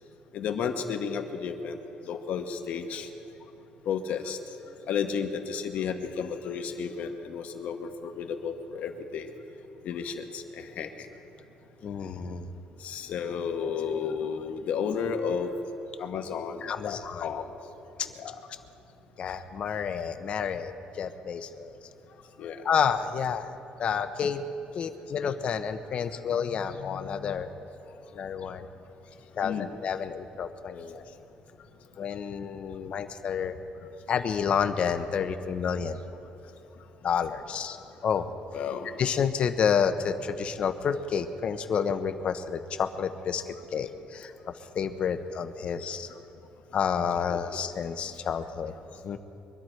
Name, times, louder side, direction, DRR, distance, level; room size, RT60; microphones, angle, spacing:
voice 1, 0.3-1.8 2.1-3.1 3.8-4.4 4.9-9.3 9.8-10.9 12.8-15.5 16.0-17.4 18.2-18.4 22.4-22.6 29.4-29.7 37.7-37.8 38.5-38.9 47.3-47.4, left 6 dB, 60° left, 5 dB, 1.1 m, -32 dB
voice 2, 11.8-12.5 16.6-17.3 19.2-21.8 22.6-23.5 23.8-24.4 24.7-27.5 28.1-28.7 29.4-29.5 29.8-31.2 32.0-33.6 34.1-36.0 37.0-37.8 38.0-38.3 39.0-44.3 44.7-46.1 46.7-48.7 49.0-49.2, left 7 dB, 40° left, 8 dB, 0.8 m, -29 dB
23.5 x 11.5 x 4.5 m, 2.9 s
cardioid pair, 170°, 3 cm